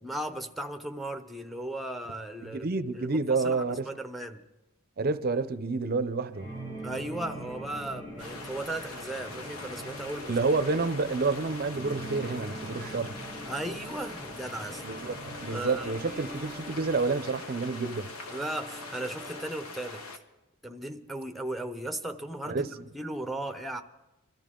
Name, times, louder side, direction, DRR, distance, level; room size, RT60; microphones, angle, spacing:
voice 1, 0.0-2.7 2.9-4.4 6.8-10.5 13.5-14.8 15.5-16.0 18.3-20.0 20.6-23.8, right 1 dB, ahead, 0.7 m, -36 dB
voice 2, 2.4-3.9 5.0-6.5 10.2-13.1 14.8-18.1 22.4-22.7, right 3 dB, 45° right, 0.6 m, -29 dB
sound 1, 6.3-19.6, right 1 dB, 30° left, 4.9 m, -43 dB
sound 2, 8.2-20.2, left 3 dB, 85° left, 1.3 m, -43 dB
Bowed string instrument, 14.2-17.3, right 1 dB, 45° left, 1.9 m, -50 dB
22.5 x 13.0 x 3.8 m
head